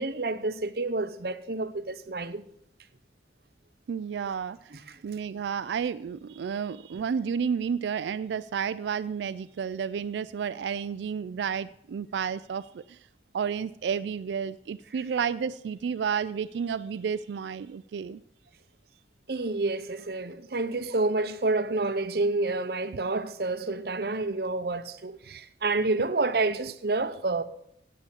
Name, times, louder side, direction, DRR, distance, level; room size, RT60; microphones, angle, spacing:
voice 1, 0.0-2.4 4.7-5.0 19.3-27.4, right 3 dB, 60° right, 0.7 m, -29 dB
voice 2, 3.9-4.6 5.0-13.0 13.3-18.2, right 7 dB, 75° right, 0.3 m, -31 dB
9.0 x 8.5 x 7.0 m
head